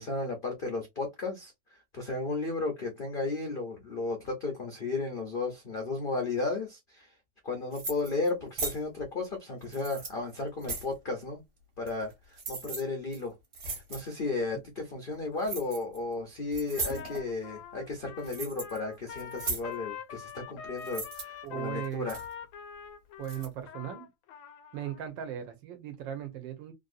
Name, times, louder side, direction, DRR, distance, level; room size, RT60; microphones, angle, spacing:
voice 1, 0.0-7.2 7.4-11.4 11.8-13.4 13.7-22.2, left 3 dB, 70° left, 0.5 m, -34 dB
sound 1, 7.7-8.3 8.6-8.8 9.6-10.9 11.9-12.1 12.4-12.8 13.1-13.2 13.5-14.1 15.4-16.0 16.5-17.3 17.9-18.8 19.1-19.7 20.8-21.2 21.8-22.3 23.2-23.5, right 3 dB, 55° right, 1.6 m, -37 dB
Trumpet, 16.7-25.0, left 8 dB, 85° left, 1.4 m, -44 dB
voice 2, 21.4-22.1 23.2-24.1 24.7-26.7, right 10 dB, 75° right, 1.5 m, -37 dB
3.5 x 2.7 x 2.4 m
omnidirectional pair, 2.1 m